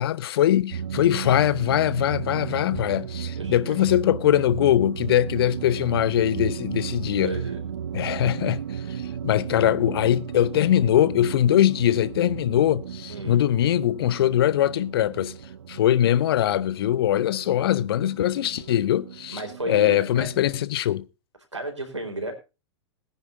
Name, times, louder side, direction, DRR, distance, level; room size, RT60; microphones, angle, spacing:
voice 1, 0.0-7.3 7.9-8.6 8.9-15.3 15.7-19.4 19.7-21.0, left 12 dB, 55° left, 0.7 m, -22 dB
sound 1, 0.7-20.6, right 8 dB, 65° right, 0.7 m, -34 dB
voice 2, 3.4-3.7 7.2-7.6 13.1-13.4 19.3-20.3 21.5-22.3, right 2 dB, 85° right, 4.2 m, -33 dB
21.0 x 10.0 x 2.7 m
figure-of-eight pair, 95°, 15 cm